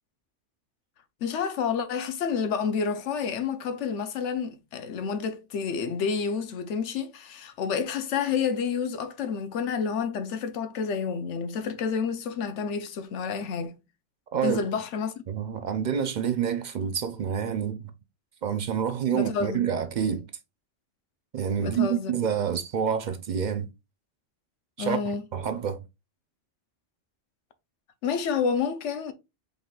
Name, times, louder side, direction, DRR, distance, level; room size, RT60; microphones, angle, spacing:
voice 1, 1.2-13.7 14.4-15.1 19.1-19.7 21.6-22.1 24.8-25.2 28.0-29.1, left 6 dB, 80° left, 0.9 m, -29 dB
voice 2, 15.3-17.9 18.4-20.3 21.3-23.7 24.8-25.8, right 8 dB, 60° right, 0.5 m, -28 dB
5.2 x 3.7 x 2.3 m
omnidirectional pair, 1.2 m